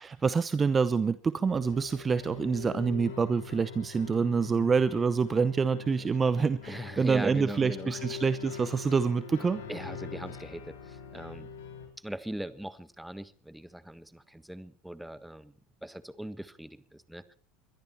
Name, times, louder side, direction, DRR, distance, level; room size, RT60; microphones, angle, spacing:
voice 1, 0.0-9.6, right 5 dB, 25° right, 15 dB, 0.8 m, -27 dB
sound 1, 1.4-11.9, left 6 dB, 80° left, 4.6 m, -43 dB
voice 2, 6.7-8.0 9.7-11.5 12.0-15.5 15.8-17.3, right 1 dB, 5° right, 13 dB, 1.5 m, -40 dB
22.0 x 13.0 x 4.4 m, 0.44 s
hypercardioid pair, 85°, 0 cm